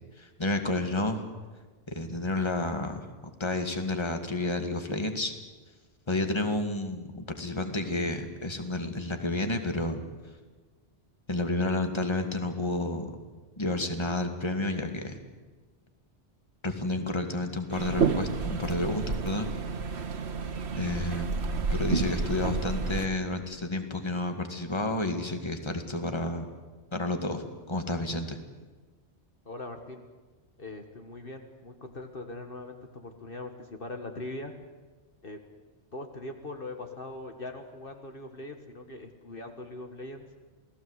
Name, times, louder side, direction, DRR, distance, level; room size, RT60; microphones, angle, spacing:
voice 1, 0.2-1.2 1.9-3.1 3.4-5.3 6.1-10.0 11.3-13.2 13.6-15.2 16.6-19.5 20.7-26.5 26.9-28.4, left 2 dB, 25° left, 6 dB, 2.1 m, -30 dB
sound 1, 17.7-23.1, right 5 dB, 70° right, 1.6 m, -30 dB
voice 2, 29.5-30.0 30.6-34.5 35.2-35.4 35.9-40.2, left 2 dB, 55° left, 5 dB, 1.9 m, -41 dB
28.5 x 18.5 x 8.2 m, 1.3 s
omnidirectional pair, 1.2 m